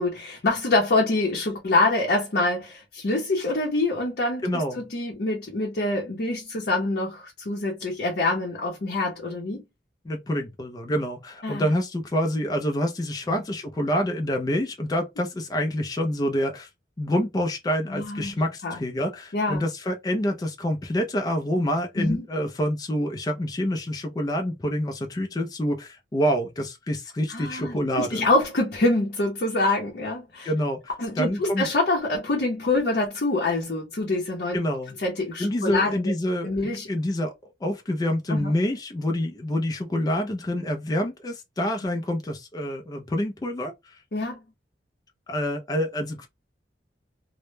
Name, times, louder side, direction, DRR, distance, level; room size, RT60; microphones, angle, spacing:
voice 1, 0.0-9.6 11.4-11.7 13.3-13.4 17.9-18.3 18.6-18.8 19.3-19.6 22.0-22.2 27.3-30.5 31.0-34.6 35.0-36.0 36.4-36.9 38.3-38.5 44.1-44.4, left 2 dB, 60° left, 0.6 m, -25 dB
voice 2, 4.4-4.8 10.1-16.7 17.0-28.3 30.5-30.8 31.2-31.7 34.5-34.9 35.4-37.3 37.6-44.0 45.3-46.3, equal, 20° left, 0.3 m, -27 dB
2.1 x 2.0 x 3.1 m
head